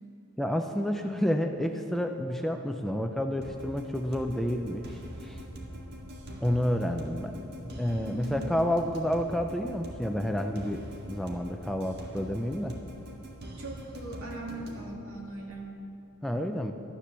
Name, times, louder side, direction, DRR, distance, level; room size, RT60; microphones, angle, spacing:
voice 1, 0.4-5.4 6.4-7.4 7.8-10.8 11.1-12.8 16.2-16.7, equal, ahead, 5 dB, 0.4 m, -30 dB
sound 1, 3.4-14.8, equal, 45° right, 1.7 m, -43 dB
sound 2, 4.2-15.6, equal, 85° right, 2.0 m, -53 dB
voice 2, 8.0-8.5 13.6-15.8, right 1 dB, 65° right, -2 dB, 2.6 m, -40 dB
13.0 x 10.0 x 6.8 m, 2.8 s
head